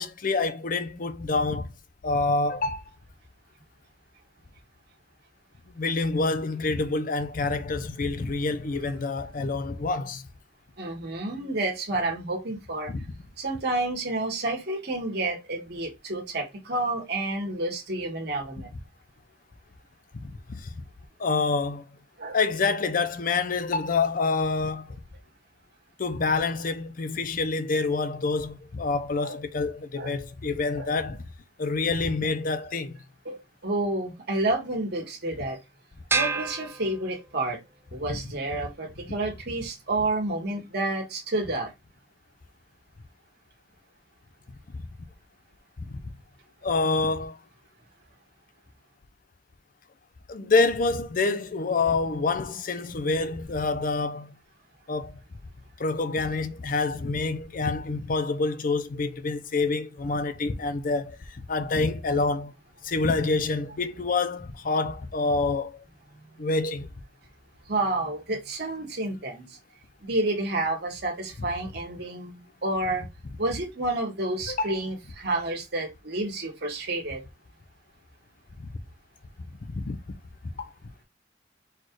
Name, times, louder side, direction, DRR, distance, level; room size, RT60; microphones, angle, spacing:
voice 1, 0.0-1.7 2.0-2.8 5.7-10.3 12.9-13.0 20.2-20.7 21.2-21.9 22.3-24.9 26.0-31.2 31.6-33.0 38.1-38.2 44.7-44.8 45.9-46.0 46.6-47.4 50.3-54.4 54.9-55.2 55.8-62.5 62.8-65.8 66.4-66.9 74.5-74.8 78.6-78.7 79.7-80.0 80.6-80.7, left 3 dB, 50° left, 0.6 m, -27 dB
voice 2, 10.8-12.9 13.4-18.7 22.2-22.4 29.2-29.4 30.0-30.1 30.7-30.9 33.2-35.6 36.1-37.6 37.9-41.7 67.7-69.5 70.0-73.0 73.4-77.2, right 2 dB, 65° right, 1.5 m, -30 dB
sound 1, 36.1-37.6, right 4 dB, 15° right, 0.4 m, -29 dB
4.4 x 2.4 x 4.6 m
head